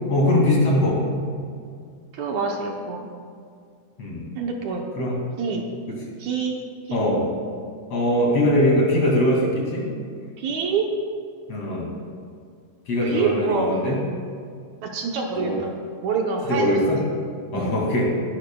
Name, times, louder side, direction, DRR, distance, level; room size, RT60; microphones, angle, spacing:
voice 1, 0.1-1.0 4.0-4.2 5.0-5.2 5.9-6.0 6.9-7.3 7.9-9.9 11.5-11.9 12.9-14.0 15.4-15.6 16.5-17.0 17.5-18.1, left 1 dB, 55° left, -3 dB, 3.5 m, -21 dB
voice 2, 2.1-3.1 4.4-4.9 5.4-5.7 6.2-6.6 6.9-7.0 10.4-10.9 13.0-13.7 14.8-15.7 16.0-16.8 17.5-17.8, right 5 dB, 70° right, 1 dB, 2.2 m, -26 dB
21.0 x 11.5 x 2.3 m, 2.2 s
omnidirectional pair, 3.7 m